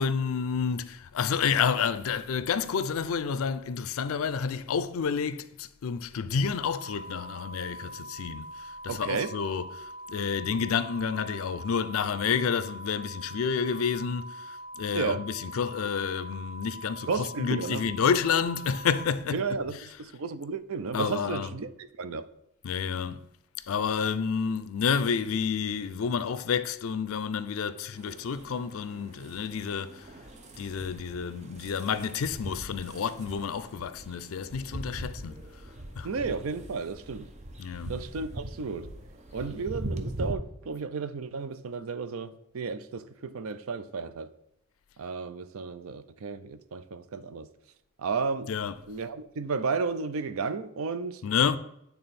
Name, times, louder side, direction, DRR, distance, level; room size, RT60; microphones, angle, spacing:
voice 1, 0.0-19.9 20.9-21.5 22.6-23.2 23.7-30.1 30.6-35.4 36.0-36.1 37.6-38.0 48.5-48.8 51.2-51.6, left 6 dB, 75° left, 0.4 m, -29 dB
sound 1, 6.4-19.0, right 1 dB, 5° right, 1.2 m, -43 dB
voice 2, 8.9-9.3 14.9-15.2 17.1-17.8 19.3-21.7 22.0-22.3 36.0-37.3 37.9-38.9 39.3-44.3 45.0-47.5 48.0-48.5 48.9-51.2, right 4 dB, 75° right, 0.5 m, -33 dB
sound 2, 27.9-40.3, right 1 dB, 35° right, 0.6 m, -41 dB
8.7 x 3.5 x 4.2 m
head